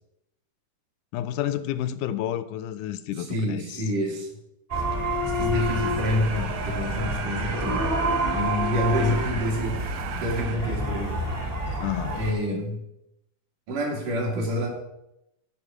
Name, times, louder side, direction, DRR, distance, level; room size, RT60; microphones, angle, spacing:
voice 1, 1.1-3.8 11.8-12.2, left 12 dB, 80° left, 1.9 m, -30 dB
voice 2, 3.3-4.3 5.2-7.9 8.3-9.8 10.1-11.2 12.1-12.8 13.7-14.7, equal, 70° right, 3.8 m, -27 dB
sound 1, 4.7-12.3, equal, 30° right, 1.0 m, -28 dB
sound 2, 5.5-10.6, right 9 dB, 90° right, 2.4 m, -37 dB
14.0 x 5.6 x 4.9 m
omnidirectional pair, 3.7 m